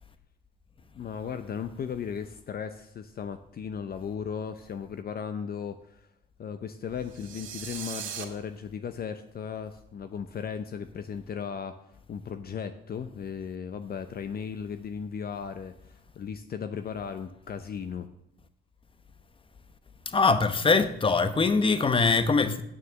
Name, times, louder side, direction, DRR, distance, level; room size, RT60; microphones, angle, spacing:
voice 1, 0.9-6.1 6.4-11.8 12.1-15.7 16.1-18.1, left 7 dB, 50° left, 0.7 m, -36 dB
sound 1, 7.1-8.2, right 8 dB, 70° right, 1.9 m, -38 dB
voice 2, 20.1-22.6, left 4 dB, 25° left, 1.0 m, -23 dB
9.3 x 6.7 x 7.5 m
cardioid pair, 90°, 20 cm